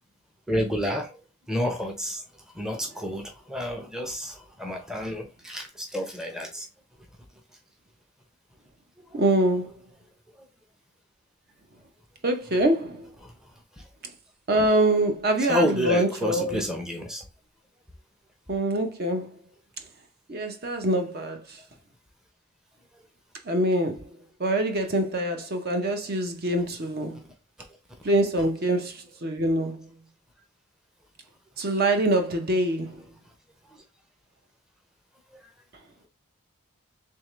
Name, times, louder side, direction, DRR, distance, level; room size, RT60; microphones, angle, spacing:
voice 1, 0.5-1.1 1.5-2.2 2.6-6.7 13.2-13.3 15.5-17.2, equal, 5° right, 0.6 m, -29 dB
voice 2, 9.1-9.7 12.2-13.0 14.5-16.7 18.5-19.3 20.3-21.4 23.5-24.0 24.4-27.2 28.0-29.9 31.6-32.9, right 1 dB, 45° right, 0.7 m, -24 dB
3.6 x 3.2 x 3.0 m
head